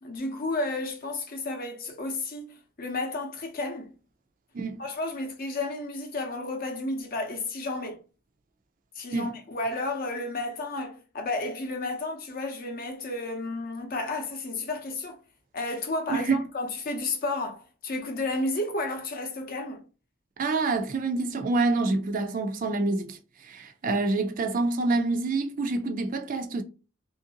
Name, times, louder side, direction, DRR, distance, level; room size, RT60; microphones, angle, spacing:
voice 1, 0.0-3.9 4.8-8.0 9.0-15.2 15.5-19.8, left 2 dB, 45° left, 0.6 m, -32 dB
voice 2, 4.5-4.9 9.1-9.3 16.1-16.4 20.4-26.6, right 3 dB, 40° right, 0.4 m, -27 dB
2.9 x 2.5 x 2.8 m
head